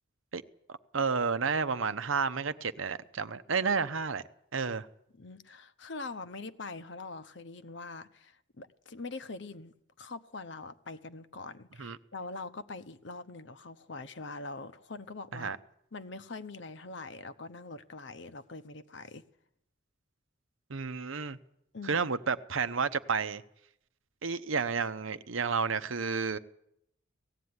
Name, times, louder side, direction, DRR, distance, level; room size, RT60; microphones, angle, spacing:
voice 1, 0.9-4.2 4.5-4.9 11.8-12.0 15.3-15.6 20.7-21.4 21.8-23.4 24.2-26.4, right 5 dB, 75° right, 0.8 m, -31 dB
voice 2, 5.2-15.5 15.9-19.2 21.7-22.1, left 3 dB, 60° left, 0.9 m, -43 dB
18.0 x 15.0 x 9.6 m
head